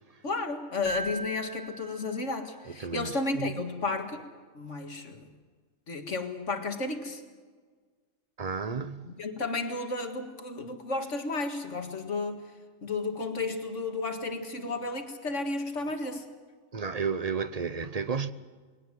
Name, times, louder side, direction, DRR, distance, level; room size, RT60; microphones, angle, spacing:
voice 1, 0.2-4.3 4.5-5.3 5.9-7.2 9.0-12.4 12.8-16.3, left 3 dB, 65° left, 2.2 m, -33 dB
Keyboard (musical), 0.8-2.7, right 2 dB, 30° left, 1.4 m, -39 dB
voice 2, 2.6-3.6 8.4-9.1 16.7-18.3, right 5 dB, 35° right, 0.7 m, -32 dB
21.5 x 18.5 x 7.7 m
omnidirectional pair, 1.4 m